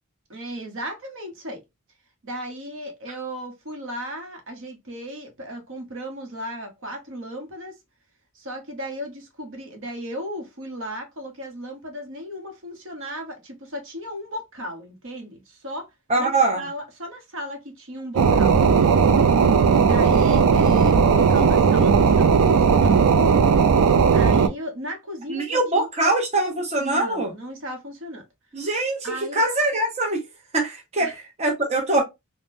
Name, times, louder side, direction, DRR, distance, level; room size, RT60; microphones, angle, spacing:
voice 1, 0.3-1.6 2.2-7.8 8.3-18.6 19.8-23.0 24.1-25.9 26.8-28.3 29.0-29.4 31.0-31.2, equal, 60° right, 0.9 m, -35 dB
voice 2, 16.1-16.6 25.3-27.3 28.5-30.2 30.5-32.0, right 2 dB, 30° right, 0.7 m, -23 dB
sound 1, 18.2-24.5, right 6 dB, 85° right, 0.4 m, -17 dB
3.4 x 2.1 x 2.6 m
head